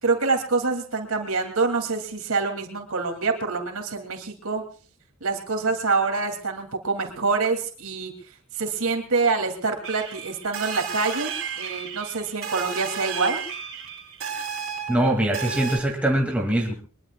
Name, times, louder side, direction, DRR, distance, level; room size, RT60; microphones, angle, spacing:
voice 1, 0.0-4.6 5.2-8.1 8.5-13.4, right 4 dB, 80° right, 4 dB, 2.9 m, -26 dB
sound 1, 9.8-15.8, right 7 dB, 60° right, 3.8 m, -33 dB
voice 2, 14.9-16.7, right 1 dB, 5° right, 0 dB, 2.5 m, -22 dB
23.0 x 21.5 x 2.4 m, 0.39 s
head